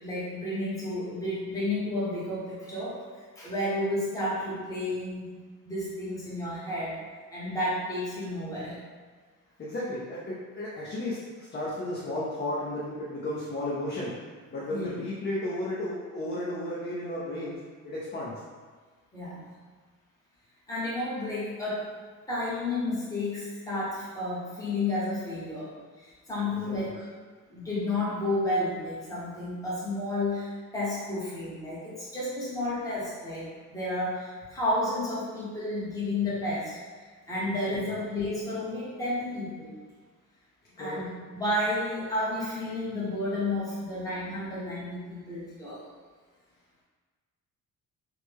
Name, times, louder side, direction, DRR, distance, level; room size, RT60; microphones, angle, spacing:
voice 1, 0.0-5.3 5.6-7.0 7.3-8.8 14.7-14.9 19.1-19.5 20.7-21.9 22.3-25.7 26.0-27.1 27.5-36.8 37.3-39.7 40.8-45.8, left 1 dB, 10° left, -8 dB, 0.9 m, -31 dB
voice 2, 9.6-14.2 14.5-18.4 26.4-26.9 37.7-37.8 40.8-41.0, left 1 dB, 30° left, -7 dB, 0.6 m, -34 dB
3.3 x 2.1 x 3.4 m, 1.4 s
cardioid pair, 140°, 34 cm